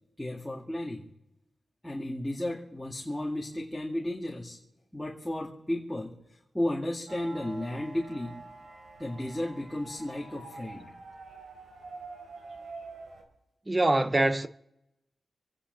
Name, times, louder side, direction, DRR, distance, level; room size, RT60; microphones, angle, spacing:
voice 1, 0.2-1.0 1.8-4.6 4.9-6.2 6.5-8.4 9.0-10.9, left 1 dB, 5° left, 2.2 m, -33 dB
sound 1, 7.1-13.2, right 3 dB, 75° right, 4.4 m, -46 dB
voice 2, 13.7-14.5, right 2 dB, 20° right, 0.7 m, -24 dB
27.5 x 10.0 x 4.0 m
wide cardioid pair, 125°, 0 cm